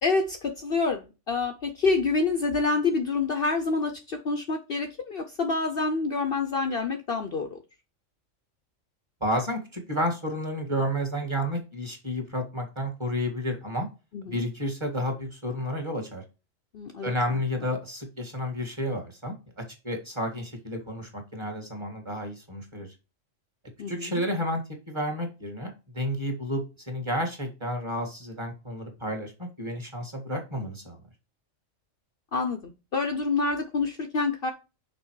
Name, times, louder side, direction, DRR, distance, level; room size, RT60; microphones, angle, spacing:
voice 1, 0.0-7.6 14.1-14.4 16.7-17.4 23.8-24.2 32.3-34.5, left 3 dB, 50° left, 5 dB, 0.9 m, -27 dB
voice 2, 9.2-13.9 14.3-16.2 17.0-22.9 23.9-31.0, equal, 20° right, 3 dB, 1.8 m, -31 dB
6.1 x 4.0 x 4.6 m, 0.29 s
omnidirectional pair, 1.4 m